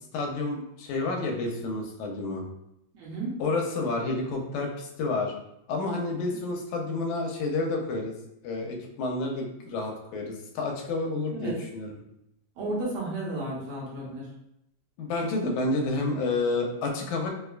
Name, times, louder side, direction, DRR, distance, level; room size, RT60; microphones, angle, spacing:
voice 1, 0.1-2.4 3.4-5.3 5.7-8.1 8.4-12.0 15.0-17.3, left 3 dB, 85° left, 1 dB, 2.0 m, -30 dB
voice 2, 3.0-3.3 6.1-6.4 11.3-11.6 12.6-14.3, right 2 dB, 70° right, -5 dB, 1.7 m, -33 dB
4.8 x 2.2 x 2.3 m, 0.81 s
omnidirectional pair, 3.3 m